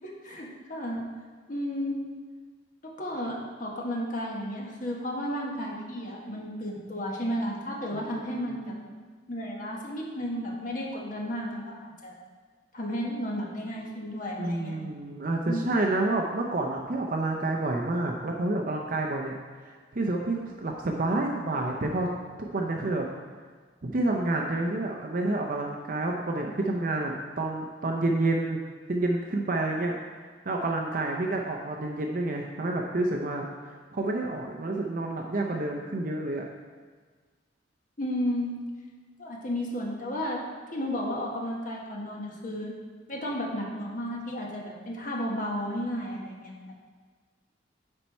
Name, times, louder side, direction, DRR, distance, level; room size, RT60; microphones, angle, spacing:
voice 1, 0.0-1.0 1.5-2.0 2.8-8.8 9.3-12.1 12.7-14.8 15.5-15.7 38.0-38.5 39.2-40.4 40.7-42.7 43.1-46.5, equal, 45° left, -2 dB, 1.3 m, -33 dB
voice 2, 7.9-8.6 14.4-19.3 19.6-22.1 22.4-23.1 23.8-28.6 28.9-36.4, right 2 dB, 45° right, 1 dB, 0.6 m, -29 dB
9.8 x 4.5 x 4.2 m, 1.5 s
head